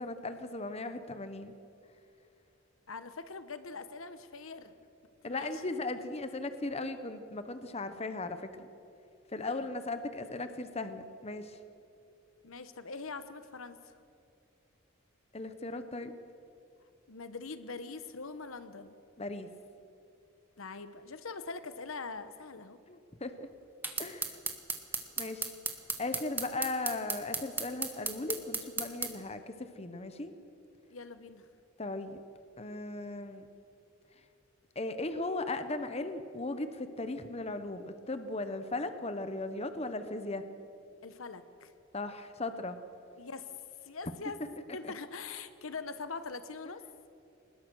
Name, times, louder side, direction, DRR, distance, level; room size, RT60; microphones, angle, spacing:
voice 1, 0.0-1.5 5.2-8.7 9.3-11.6 15.3-16.1 19.2-19.5 22.9-23.5 24.0-24.4 25.2-25.5 26.0-30.3 31.8-32.2 32.6-33.5 34.7-40.4 41.9-42.8 44.4-44.5 44.8-44.9, left 2 dB, 30° left, 10 dB, 1.0 m, -37 dB
voice 2, 2.9-4.8 5.2-5.5 9.4-9.7 12.4-13.9 17.1-19.0 20.6-22.8 30.9-31.5 41.0-41.7 43.2-43.5 43.8-44.4 44.7-46.8, left 4 dB, 80° left, 11 dB, 1.1 m, -43 dB
sound 1, 23.8-29.1, right 3 dB, 10° right, 1.5 m, -34 dB
23.5 x 20.5 x 6.3 m, 2.7 s
head